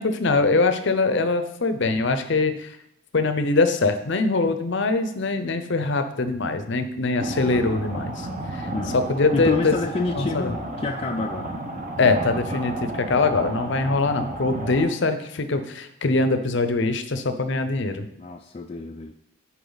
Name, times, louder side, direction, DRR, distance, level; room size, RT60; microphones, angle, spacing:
voice 1, 0.0-2.7 3.1-8.3 8.5-8.7 8.9-9.7 10.2-10.5 12.0-18.1, left 3 dB, 55° left, 9 dB, 0.6 m, -23 dB
sound 1, 7.2-14.9, right 1 dB, 35° right, 1.0 m, -32 dB
voice 2, 9.3-11.7 12.0-12.2 18.2-19.1, left 3 dB, 30° left, 3 dB, 0.3 m, -28 dB
10.0 x 4.6 x 4.0 m, 0.78 s
head